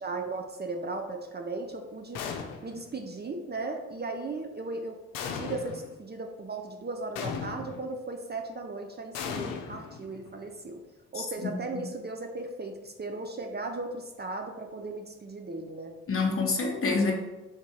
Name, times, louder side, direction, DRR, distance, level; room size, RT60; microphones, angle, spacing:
voice 1, 0.0-2.2 2.6-5.0 5.3-10.8 11.1-16.0, right 3 dB, 30° right, 4 dB, 0.6 m, -37 dB
sound 1, 2.1-2.9 5.1-5.9 7.1-7.9 9.1-10.4, left 6 dB, 85° left, 0.6 m, -36 dB
voice 2, 11.2-11.8 16.1-17.1, left 4 dB, 40° left, 1 dB, 1.0 m, -28 dB
3.7 x 2.7 x 4.6 m, 1.0 s
supercardioid pair, 55°, 32 cm